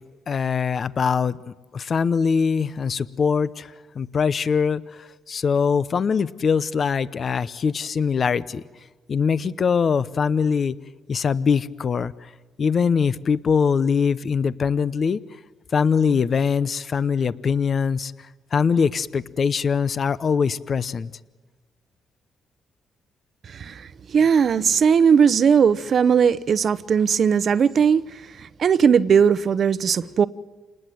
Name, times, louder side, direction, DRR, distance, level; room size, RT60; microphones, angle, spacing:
voice 1, 0.3-1.4 1.7-8.6 9.1-10.7 11.1-12.1 12.6-15.2 15.7-18.1 18.5-21.1, left 6 dB, 45° left, 0.8 m, -22 dB
voice 2, 23.5-30.3, right 7 dB, 55° right, 0.9 m, -19 dB
28.5 x 20.0 x 7.7 m
cardioid pair, 90°, 0 cm